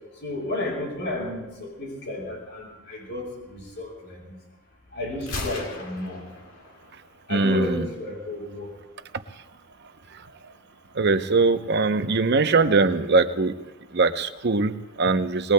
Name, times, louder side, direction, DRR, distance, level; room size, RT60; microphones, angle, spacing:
voice 1, 0.2-4.2 4.9-6.2 7.3-8.7, left 2 dB, 55° left, -2 dB, 6.8 m, -32 dB
Gunshot gunfire, 5.2-7.2, left 2 dB, 75° left, 2.0 m, -36 dB
voice 2, 7.3-7.9 11.0-13.6 13.9-15.5, right 3 dB, 55° right, 9 dB, 0.7 m, -21 dB
27.0 x 20.5 x 2.2 m, 1.0 s
head